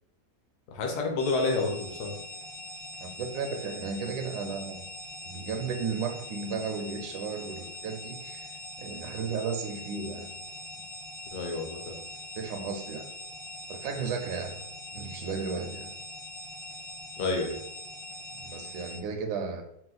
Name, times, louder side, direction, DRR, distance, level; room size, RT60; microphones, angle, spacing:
voice 1, 0.7-2.1 11.3-12.0 17.2-17.6, left 3 dB, 60° left, 1.2 m, -29 dB
sound 1, 1.2-19.0, left 1 dB, 75° left, 1.7 m, -42 dB
voice 2, 3.0-4.8 5.2-10.4 12.3-13.1 13.7-15.9 18.3-19.6, right 5 dB, 75° right, 0.9 m, -34 dB
4.7 x 2.3 x 3.8 m
omnidirectional pair, 2.2 m